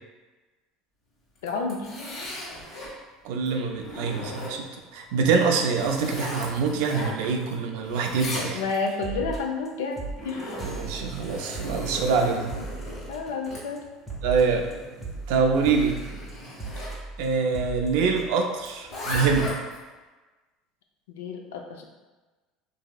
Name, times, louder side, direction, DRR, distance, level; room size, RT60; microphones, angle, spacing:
Zipper (clothing), 1.3-2.9 3.5-4.8 5.3-7.5 7.8-8.9 9.8-17.0 18.6-19.8, left 1 dB, 50° left, 1.2 m, -37 dB
voice 1, 1.4-1.9 8.5-10.6 13.1-13.8 21.1-21.8, left 4 dB, 90° left, 2 dB, 0.4 m, -30 dB
voice 2, 3.2-4.7 4.9-8.6 10.6-12.5 14.2-14.7 15.3-16.0 17.2-19.5, right 5 dB, 75° right, 3 dB, 0.4 m, -25 dB
sound 1, 8.7-8.8 9.0-9.7 10.0-13.5 13.8-18.5 18.8-18.9 19.1-19.4, right 3 dB, 15° right, 0.6 m, -37 dB
3.0 x 2.6 x 2.3 m, 1.2 s
supercardioid pair, 100°, 0 cm